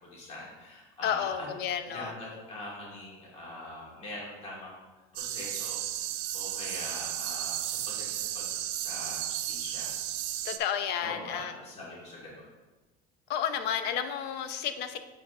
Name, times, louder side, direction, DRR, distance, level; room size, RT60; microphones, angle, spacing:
voice 1, 0.0-1.5 1.9-4.8 5.1-5.8 6.3-8.5 8.7-9.9 11.0-12.5, left 1 dB, 35° left, -5 dB, 2.3 m, -43 dB
voice 2, 1.0-2.1 10.4-11.5 13.3-15.0, left 9 dB, 65° left, 9 dB, 0.7 m, -31 dB
sound 1, 5.2-10.6, right 12 dB, 70° right, 0.5 m, -34 dB
7.5 x 5.3 x 3.7 m, 1.2 s
cardioid pair, 145°, 19 cm